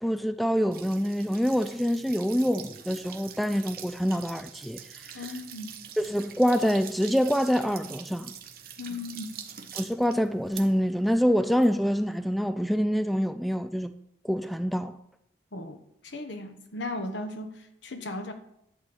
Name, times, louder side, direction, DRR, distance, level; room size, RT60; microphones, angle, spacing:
voice 1, 0.0-5.2 6.0-8.3 9.7-13.9 14.2-15.0, equal, ahead, 0.3 m, -26 dB
sound 1, 0.7-12.4, right 8 dB, 50° right, 1.1 m, -45 dB
voice 2, 5.1-5.8 8.8-9.4 15.5-15.8 16.0-17.5 17.8-18.3, left 2 dB, 80° left, 1.2 m, -36 dB
11.5 x 4.4 x 8.0 m
head